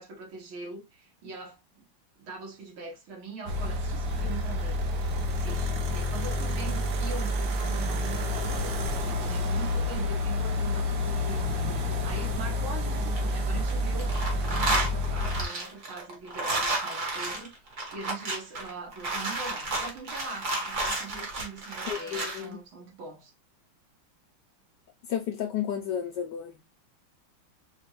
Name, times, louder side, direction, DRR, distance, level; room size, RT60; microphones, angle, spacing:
voice 1, 0.0-1.8 2.2-4.9 5.2-11.4 11.7-14.1 14.4-17.5 17.9-23.3, right 3 dB, 85° right, 2.3 m, -42 dB
sound 1, 3.5-15.5, left 1 dB, 65° right, 1.4 m, -29 dB
sound 2, 12.9-13.7 14.0-22.4, right 2 dB, 45° right, 1.5 m, -31 dB
voice 2, 21.9-22.6 25.1-26.6, left 9 dB, 75° left, 1.1 m, -32 dB
5.0 x 2.4 x 3.0 m
omnidirectional pair, 2.2 m